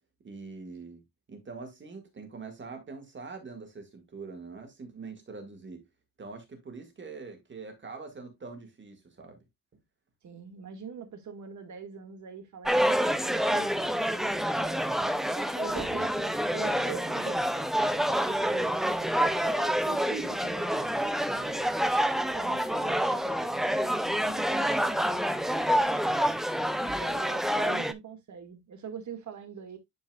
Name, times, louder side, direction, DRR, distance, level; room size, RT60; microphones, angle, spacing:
voice 1, 0.2-1.0 1.3-5.8 6.2-9.4 26.8-27.0, right 4 dB, 30° right, 1.8 m, -44 dB
voice 2, 10.2-21.7 22.3-26.2 27.0-29.8, right 7 dB, 45° right, 1.8 m, -44 dB
sound 1, 12.6-27.9, equal, ahead, 0.3 m, -27 dB
11.0 x 4.5 x 2.3 m
cardioid pair, 165°, 40 cm